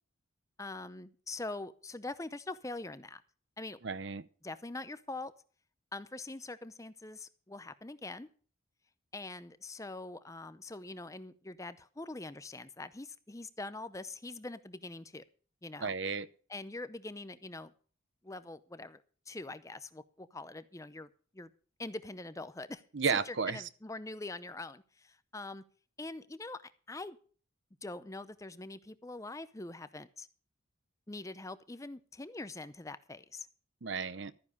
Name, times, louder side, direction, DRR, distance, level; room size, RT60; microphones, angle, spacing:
voice 1, 0.6-3.2 3.6-3.8 4.4-5.3 5.9-8.3 9.1-15.2 15.6-15.9 16.5-17.7 18.2-21.5 21.8-22.8 23.3-25.6 26.0-27.2 27.8-30.3 31.1-33.5, left 2 dB, 15° left, 0.6 m, -43 dB
voice 2, 3.8-4.2 15.8-16.3 22.9-23.6 33.8-34.3, right 5 dB, 60° right, 0.7 m, -33 dB
13.0 x 9.8 x 5.3 m
head